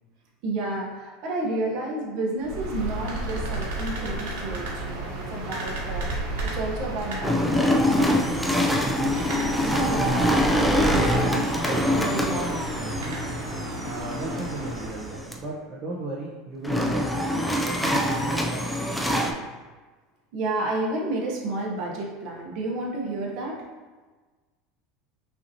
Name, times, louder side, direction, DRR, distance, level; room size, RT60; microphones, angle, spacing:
voice 1, 0.4-12.6 20.3-23.6, right 2 dB, 55° right, -2 dB, 1.1 m, -32 dB
sound 1, 2.4-15.4, right 2 dB, 85° right, 1.1 m, -33 dB
sound 2, 7.2-15.3 16.6-19.3, left 1 dB, ahead, 0.4 m, -24 dB
voice 2, 13.8-17.1 17.6-19.4, right 2 dB, 30° right, -5 dB, 0.7 m, -36 dB
5.6 x 2.7 x 2.9 m, 1.3 s
supercardioid pair, 145°, 0 cm